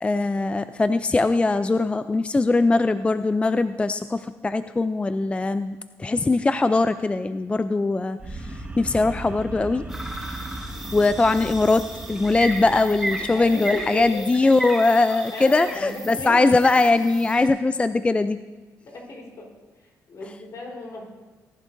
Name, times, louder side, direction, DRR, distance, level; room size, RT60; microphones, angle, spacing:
voice 1, 0.0-9.8 10.9-18.4, left 3 dB, 20° left, 12 dB, 0.3 m, -21 dB
sound 1, 8.2-14.5, right 2 dB, 20° right, 1.5 m, -38 dB
sound 2, 9.9-17.5, right 1 dB, ahead, 4.2 m, -35 dB
voice 2, 13.3-14.0 15.3-16.7 18.9-19.5 19.8-21.0, left 2 dB, 65° left, -1 dB, 3.8 m, -35 dB
19.5 x 11.0 x 2.6 m, 1.3 s
cardioid pair, 80°, 6 cm